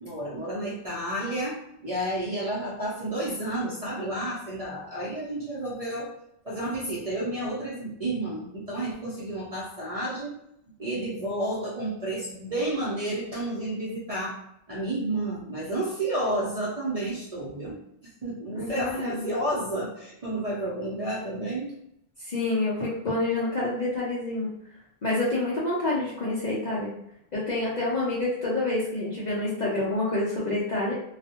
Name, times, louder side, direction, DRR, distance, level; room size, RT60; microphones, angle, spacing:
voice 1, 0.0-6.1 6.4-10.4 10.8-14.4 14.7-17.8 18.2-21.7, right 1 dB, 40° right, -6 dB, 0.6 m, -31 dB
voice 2, 18.5-19.3 22.2-24.5 25.0-26.9 27.3-30.9, left 2 dB, 50° left, -7 dB, 0.5 m, -28 dB
2.3 x 2.1 x 2.8 m, 0.76 s
omnidirectional pair, 1.2 m